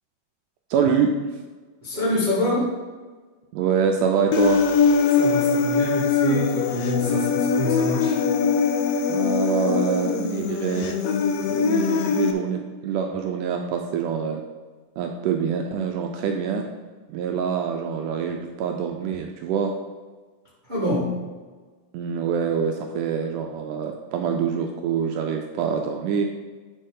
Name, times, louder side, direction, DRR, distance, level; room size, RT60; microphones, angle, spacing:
voice 1, 0.7-1.1 3.5-4.7 9.1-11.0 11.5-14.4 15.0-16.7 17.1-19.7 21.9-26.2, right 7 dB, 80° right, 3 dB, 2.0 m, -25 dB
voice 2, 1.8-2.7 5.1-8.2 20.7-21.2, left 1 dB, 40° right, -7 dB, 0.6 m, -26 dB
Human voice, 4.3-12.3, left 5 dB, 85° left, 1.5 m, -22 dB
10.5 x 4.4 x 3.7 m, 1.4 s
omnidirectional pair, 3.8 m